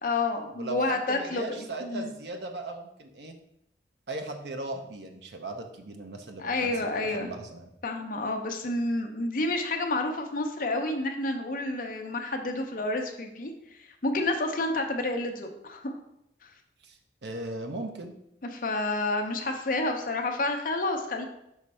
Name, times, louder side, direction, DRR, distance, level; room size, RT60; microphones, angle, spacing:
voice 1, 0.0-2.1 6.4-7.3 7.8-13.5 13.8-15.9 18.5-21.2, left 2 dB, 50° left, 4 dB, 0.7 m, -29 dB
voice 2, 0.6-3.4 4.1-7.7 16.8-18.1, right 2 dB, 75° right, 4 dB, 0.7 m, -38 dB
6.4 x 3.2 x 5.4 m, 0.81 s
head